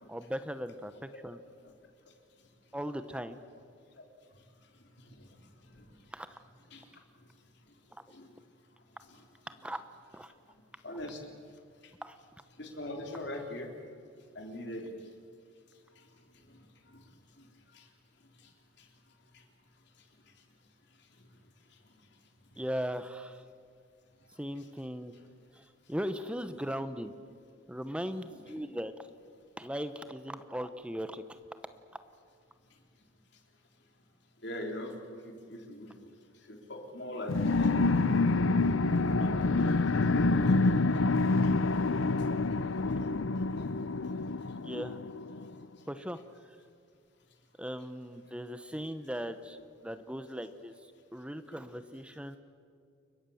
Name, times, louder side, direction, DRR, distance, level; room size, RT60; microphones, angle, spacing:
voice 1, 0.1-1.4 2.7-3.4 6.1-6.4 9.6-9.8 10.1-10.3 12.0-12.2 22.6-23.4 24.4-25.1 25.5-25.6 25.9-27.1 27.7-28.9 29.6-31.4 44.6-45.0 45.9-46.2 47.6-49.6 49.8-50.7 51.1-52.4, equal, 5° right, 10 dB, 0.9 m, -38 dB
voice 2, 10.8-11.2 12.6-13.7 14.4-14.9 16.5-16.6 16.9-17.0 17.7-17.9 19.3-19.4 28.3-28.6 34.4-34.9 35.2-36.1 36.5-38.2 39.2-40.6 51.5-51.6, left 1 dB, 55° left, 3 dB, 3.6 m, -42 dB
sound 1, 37.3-45.4, left 3 dB, 70° left, 0.7 m, -27 dB
29.5 x 23.0 x 7.1 m, 2.3 s
head